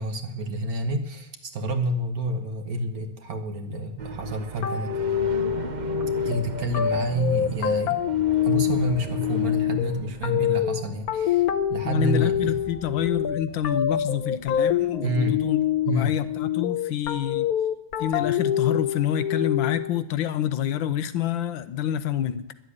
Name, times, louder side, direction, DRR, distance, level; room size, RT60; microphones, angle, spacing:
voice 1, 0.0-5.0 6.2-7.9 8.4-12.6 15.0-15.4 15.8-16.2, equal, 55° right, 6 dB, 1.5 m, -28 dB
sound 1, 4.0-16.4, right 5 dB, 80° right, 0.4 m, -39 dB
sound 2, 4.6-20.0, left 10 dB, 60° left, 1.1 m, -26 dB
voice 2, 11.8-15.6 15.9-17.5 18.0-22.4, left 10 dB, 80° left, 12 dB, 1.5 m, -27 dB
11.5 x 7.7 x 9.8 m, 0.81 s
omnidirectional pair, 2.1 m